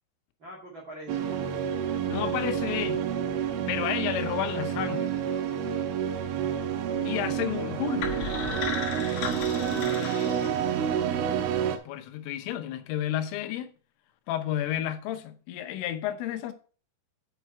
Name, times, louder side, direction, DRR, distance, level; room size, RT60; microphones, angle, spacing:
voice 1, 0.4-1.3, right 1 dB, 50° right, 1.4 m, -48 dB
sound 1, 1.1-11.8, right 8 dB, 80° right, 3.4 m, -29 dB
voice 2, 2.1-3.1 3.7-5.2 7.0-8.1 11.9-13.7 14.3-16.5, left 12 dB, 90° left, 3.5 m, -31 dB
sound 2, 8.0-11.0, left 5 dB, 70° left, 2.2 m, -35 dB
8.4 x 6.0 x 4.4 m
omnidirectional pair, 5.6 m